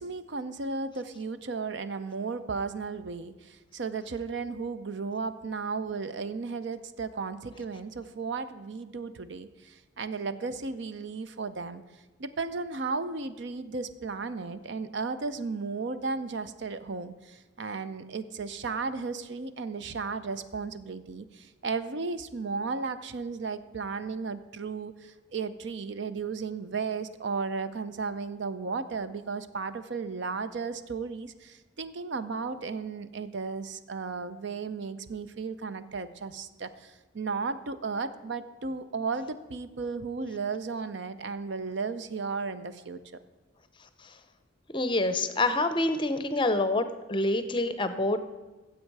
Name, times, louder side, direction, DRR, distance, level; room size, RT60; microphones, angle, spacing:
voice 1, 0.0-11.8 12.2-43.2, right 4 dB, 60° right, 12 dB, 0.6 m, -34 dB
voice 2, 44.7-48.2, left 2 dB, 25° left, 10 dB, 0.6 m, -27 dB
15.0 x 7.6 x 4.7 m, 1.2 s
head